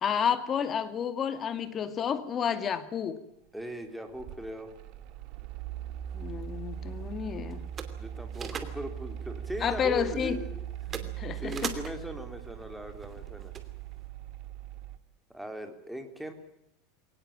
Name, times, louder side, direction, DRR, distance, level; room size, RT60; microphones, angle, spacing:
voice 1, 0.0-3.2 6.1-7.7 9.6-10.4 10.9-11.7, left 8 dB, 25° left, 11 dB, 2.2 m, -30 dB
voice 2, 3.5-4.7 8.0-11.0 11.3-13.5 15.3-16.3, equal, ahead, 6 dB, 3.4 m, -39 dB
Mechanical fan, 3.7-15.0, right 10 dB, 50° right, 2.0 m, -40 dB
sound 1, 6.1-14.1, right 6 dB, 25° right, 2.8 m, -44 dB
23.0 x 19.0 x 8.8 m, 0.79 s
supercardioid pair, 145°, 0 cm